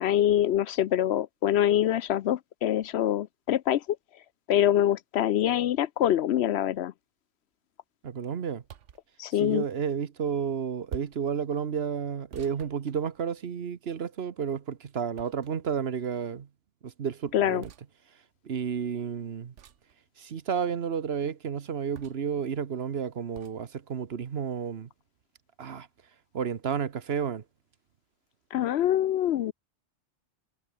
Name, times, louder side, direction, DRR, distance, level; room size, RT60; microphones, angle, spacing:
voice 1, 0.0-3.8 4.5-6.9 9.2-9.6 17.3-17.6 28.5-29.5, left 11 dB, 70° left, 0.8 m, -25 dB
voice 2, 8.0-8.6 9.3-16.5 16.8-17.7 18.4-19.5 20.2-24.9 25.6-25.9 26.3-27.4, right 7 dB, 60° right, 1.2 m, -31 dB
sound 1, 8.6-9.1 10.9-11.3 12.3-13.5 15.2-15.8 17.6-17.9 19.6-19.9 21.9-22.4 23.3-23.6, right 9 dB, 85° right, 1.2 m, -45 dB
omnidirectional pair, 1.2 m